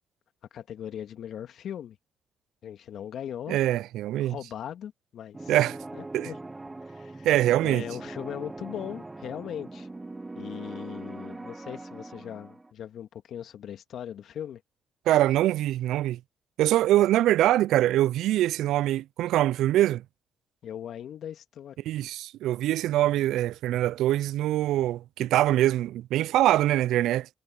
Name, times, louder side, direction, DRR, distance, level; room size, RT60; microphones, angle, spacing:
voice 1, 0.5-2.0 2.6-3.6 4.2-5.6 5.9-6.4 6.8-7.3 7.6-9.9 10.3-14.6 20.6-21.8, left 9 dB, 65° left, 2.3 m, -39 dB
voice 2, 3.5-4.4 5.5-5.8 6.1-6.3 7.2-7.8 15.1-16.2 16.6-20.0 21.9-27.3, right 14 dB, 75° right, 0.4 m, -23 dB
sound 1, 5.3-12.7, right 2 dB, 20° right, 0.8 m, -41 dB
hypercardioid pair, 50°, 0 cm